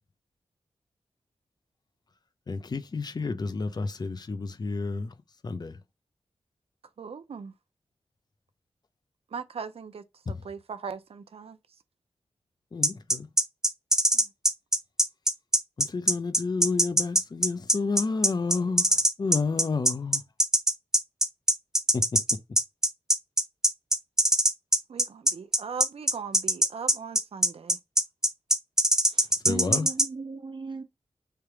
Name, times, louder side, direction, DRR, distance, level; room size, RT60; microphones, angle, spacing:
voice 1, 2.5-5.1 5.4-5.8 10.3-10.4 12.7-13.3 15.8-20.2 21.9-22.0 29.4-29.9, left 4 dB, 40° left, 0.5 m, -30 dB
voice 2, 7.0-7.5 9.3-11.6 14.1-14.3 24.9-27.8, right 6 dB, 70° right, 0.6 m, -39 dB
sound 1, 12.8-30.1, right 1 dB, 5° right, 0.5 m, -22 dB
voice 3, 29.1-30.8, right 4 dB, 50° right, 0.9 m, -37 dB
3.4 x 2.9 x 4.6 m
wide cardioid pair, 95°, 10 cm